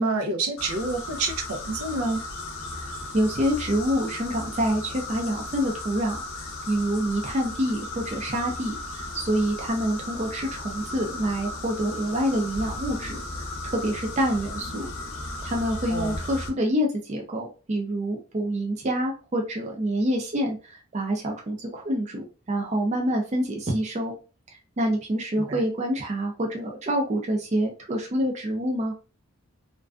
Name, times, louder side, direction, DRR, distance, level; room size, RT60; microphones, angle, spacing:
voice 1, 0.0-2.2 15.9-16.2 25.3-25.6, right 3 dB, 80° right, 5 dB, 0.6 m, -28 dB
sound 1, 0.6-16.5, left 2 dB, 70° left, 0.5 m, -36 dB
voice 2, 3.1-13.2 13.6-14.9 15.4-24.1 24.8-28.9, equal, 30° right, 1 dB, 0.4 m, -27 dB
2.4 x 2.2 x 2.3 m, 0.34 s
head